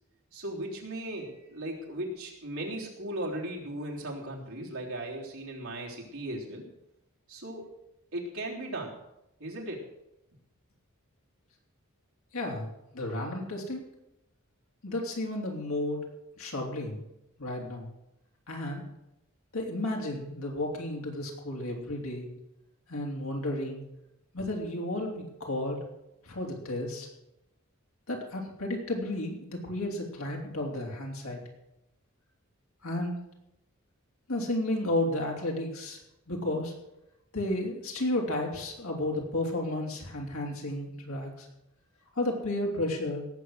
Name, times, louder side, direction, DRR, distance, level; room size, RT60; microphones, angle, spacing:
voice 1, 0.3-6.7 7.3-7.7 8.1-9.0 9.4-9.9, right 1 dB, 75° right, -2 dB, 3.5 m, -37 dB
voice 2, 12.3-13.8 14.8-16.0 16.4-17.0 17.4-17.9 18.5-18.8 19.5-22.3 22.9-23.8 24.3-25.8 26.2-27.1 28.1-31.4 32.8-33.2 34.3-36.0 36.3-36.7 37.3-41.5 42.1-43.2, left 1 dB, 75° left, -1 dB, 3.4 m, -32 dB
17.5 x 7.7 x 6.5 m, 0.88 s
head